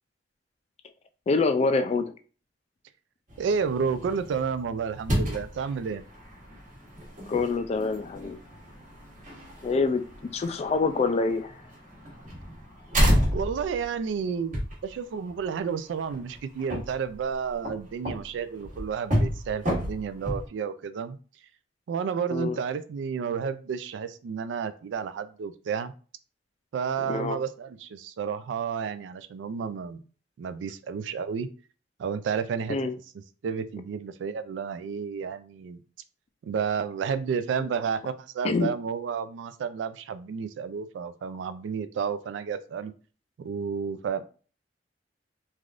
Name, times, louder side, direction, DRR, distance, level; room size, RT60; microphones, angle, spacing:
voice 1, 1.3-2.0 7.3-8.4 9.6-10.0 10.3-11.5 22.3-22.6 27.0-27.4 32.7-32.9 37.6-37.7 38.4-38.7, left 3 dB, 35° left, 9 dB, 0.3 m, -26 dB
sound 1, 3.3-20.5, equal, 45° right, 1.1 m, -31 dB
voice 2, 3.4-6.0 13.3-21.2 21.9-25.9 26.7-30.0 30.4-31.5 32.0-32.8 33.1-35.8 36.4-42.9 43.4-44.3, right 6 dB, 80° right, 12 dB, 0.3 m, -31 dB
3.3 x 2.4 x 2.4 m, 0.38 s
head